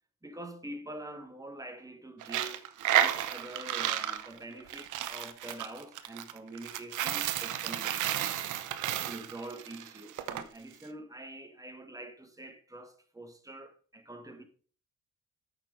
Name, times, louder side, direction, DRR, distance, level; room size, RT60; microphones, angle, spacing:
voice 1, 0.2-2.6 3.0-8.6 9.0-14.4, right 1 dB, 10° right, 2.0 m, -45 dB
Coin (dropping), 2.2-10.4, right 11 dB, 85° right, 0.9 m, -32 dB
8.8 x 6.5 x 5.3 m
cardioid pair, 90°, 30 cm